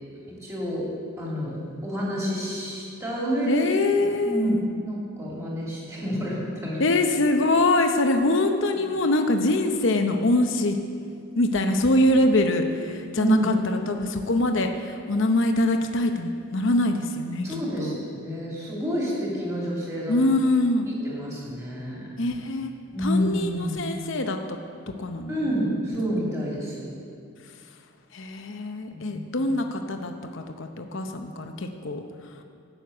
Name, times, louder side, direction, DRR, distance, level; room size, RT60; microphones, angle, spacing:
voice 1, 0.4-0.9 1.2-3.6 4.0-6.8 13.1-13.5 17.4-20.2 21.0-22.0 22.9-23.8 25.3-26.9 28.9-29.2, equal, 15° right, -5 dB, 2.8 m, -28 dB
voice 2, 3.5-4.6 6.8-10.8 11.4-17.5 17.8-18.0 20.1-20.9 22.2-22.7 23.0-24.6 25.0-25.4 28.1-32.0, left 2 dB, 55° left, 5 dB, 0.7 m, -24 dB
12.0 x 6.6 x 8.4 m, 2.3 s
head